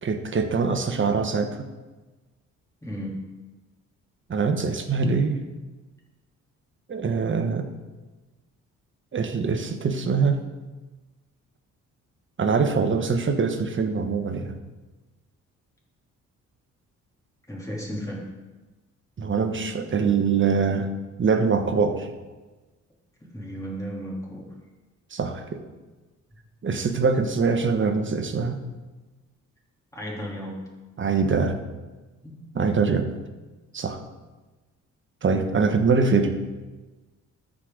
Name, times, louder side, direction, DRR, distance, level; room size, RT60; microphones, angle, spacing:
voice 1, 0.0-1.7 4.3-5.4 6.9-7.7 9.1-10.4 12.4-14.6 19.2-20.9 21.2-22.1 25.1-25.6 26.6-28.6 31.0-31.6 32.5-33.1 33.7-34.0 35.2-36.3, right 5 dB, 40° right, 6 dB, 1.1 m, -23 dB
voice 2, 2.8-3.3 17.5-18.3 23.2-24.5 29.9-30.7 32.2-32.5, equal, 10° left, -4 dB, 3.1 m, -34 dB
13.5 x 5.0 x 3.8 m, 1.2 s
cardioid pair, 70°, 31 cm